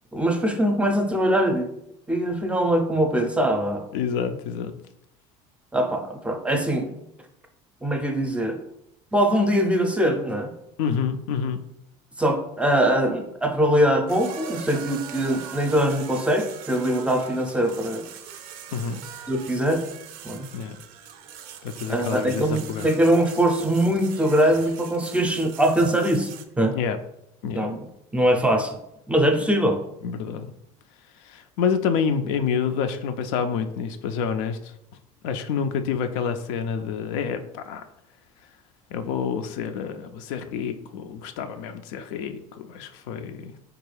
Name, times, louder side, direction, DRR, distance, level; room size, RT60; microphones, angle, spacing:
voice 1, 0.1-1.7 2.1-3.9 5.7-6.9 7.8-8.6 9.1-10.5 12.2-18.1 19.3-19.8 20.2-20.5 21.9-26.3 26.6-26.7 27.5-27.9 28.1-28.8 29.1-29.8, right 1 dB, 5° right, 4 dB, 0.5 m, -22 dB
voice 2, 3.9-4.7 10.8-11.6 18.7-19.0 20.5-20.8 21.6-22.9 26.7-27.0 27.4-27.7 29.4-29.5 30.0-30.5 31.2-34.7 35.2-37.8 38.9-43.5, left 6 dB, 85° left, 8 dB, 0.4 m, -28 dB
sound 1, 14.1-26.5, right 8 dB, 70° right, 0.4 m, -41 dB
3.4 x 2.3 x 3.2 m, 0.80 s
supercardioid pair, 100°, 16 cm